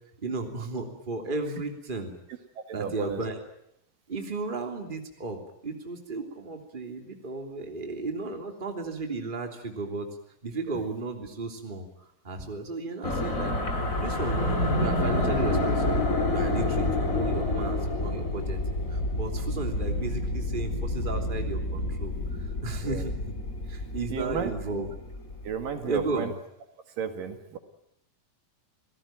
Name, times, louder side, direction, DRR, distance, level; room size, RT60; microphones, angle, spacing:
voice 1, 0.2-2.1 2.7-3.4 4.1-10.1 10.4-13.5 14.0-15.9 16.2-18.6 18.9-22.1 22.6-23.3 23.7-24.9 25.8-26.3, right 3 dB, 15° right, 4 dB, 2.9 m, -34 dB
voice 2, 2.6-3.2 10.7-10.8 22.8-23.1 24.1-24.5 25.4-26.3 27.0-27.6, right 7 dB, 70° right, 8 dB, 3.5 m, -33 dB
sound 1, 13.0-25.6, left 2 dB, 25° left, 2.6 m, -28 dB
28.0 x 17.5 x 9.1 m, 0.77 s
omnidirectional pair, 4.0 m